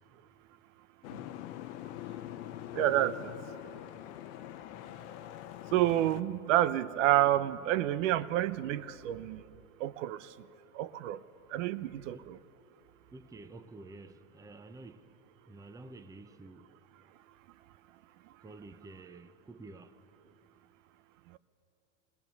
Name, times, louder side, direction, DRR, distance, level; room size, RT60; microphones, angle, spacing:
Boat Water vehicle, 1.0-6.2, left 13 dB, 65° left, 0.9 m, -44 dB
voice 1, 2.7-3.3 5.7-9.4 9.8-10.2 10.7-11.2 11.5-12.4, right 13 dB, 80° right, 0.7 m, -29 dB
voice 2, 13.1-15.1 15.5-16.7 18.4-20.0, right 2 dB, 10° right, 0.6 m, -50 dB
21.0 x 18.5 x 6.8 m
supercardioid pair, 125°, 38 cm